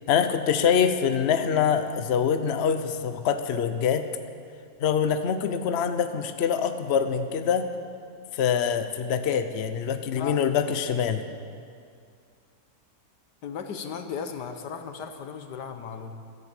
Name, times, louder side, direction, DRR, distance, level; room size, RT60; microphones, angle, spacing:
voice 1, 0.1-4.0 4.8-7.7 8.3-11.2, left 7 dB, 50° left, 9 dB, 0.9 m, -24 dB
voice 2, 9.9-10.4 13.4-16.1, left 6 dB, 90° left, 7 dB, 1.6 m, -36 dB
13.5 x 11.0 x 8.2 m, 2.3 s
omnidirectional pair, 1.8 m